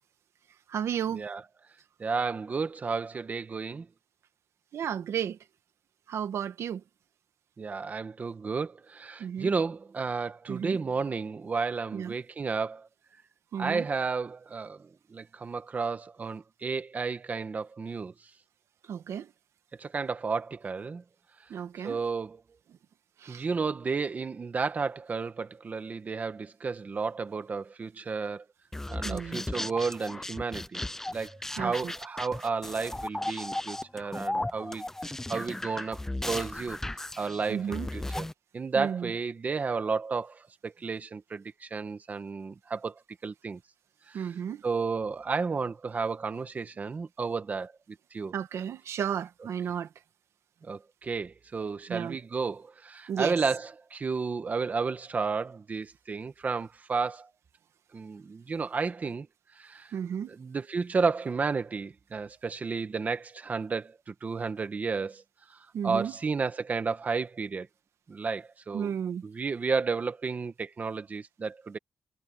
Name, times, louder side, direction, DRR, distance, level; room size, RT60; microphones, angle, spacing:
voice 1, 0.7-1.2 4.7-5.4 6.1-6.8 9.2-9.5 10.5-10.8 11.9-12.1 13.5-13.9 18.9-19.3 21.5-22.0 23.2-23.4 29.0-29.5 31.6-31.9 37.5-37.9 38.7-39.1 44.1-44.6 48.3-49.9 51.9-52.2 53.1-53.3 59.9-60.3 65.7-66.1 68.7-69.2, right 8 dB, 85° right, 1.5 m, -33 dB
voice 2, 2.0-3.9 7.6-12.9 13.6-18.3 19.8-21.0 21.8-22.4 23.3-28.4 28.9-30.8 31.1-36.8 37.2-38.3 38.5-43.6 44.1-44.3 44.6-48.3 50.6-57.3 57.9-59.3 59.5-59.9 60.3-65.2 65.5-67.7 68.1-68.9 69.2-71.8, right 4 dB, 35° right, 1.4 m, -32 dB
sound 1, 28.7-38.3, left 1 dB, 10° left, 0.7 m, -36 dB
wide cardioid pair, 155°, 5 cm